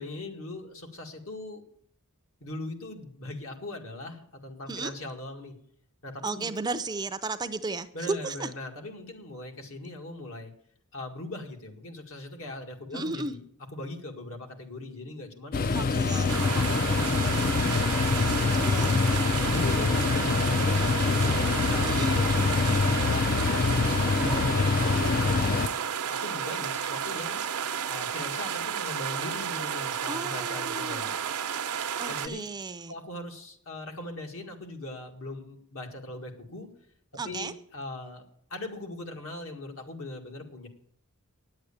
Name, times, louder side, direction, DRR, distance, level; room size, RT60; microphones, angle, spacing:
voice 1, 0.0-1.7 2.4-5.6 6.0-6.5 7.9-10.5 10.9-13.4 13.7-15.6 16.1-17.9 19.2-22.2 22.8-25.8 26.0-27.4 27.9-31.1 32.1-32.4 32.9-36.7 37.2-38.2 38.5-40.7, left 2 dB, 65° left, 3 dB, 1.9 m, -40 dB
voice 2, 6.2-8.5 12.9-13.4 15.7-16.3 18.5-19.0 21.9-22.3 30.1-31.1 32.0-32.9 37.2-37.5, right 3 dB, 20° right, 11 dB, 0.5 m, -34 dB
sound 1, 15.5-25.7, left 4 dB, 40° left, 0.4 m, -25 dB
sound 2, 16.3-32.3, right 8 dB, 85° right, 0.7 m, -32 dB
sound 3, 17.1-25.7, left 2 dB, 80° left, 4.1 m, -46 dB
9.8 x 7.8 x 8.6 m, 0.67 s
head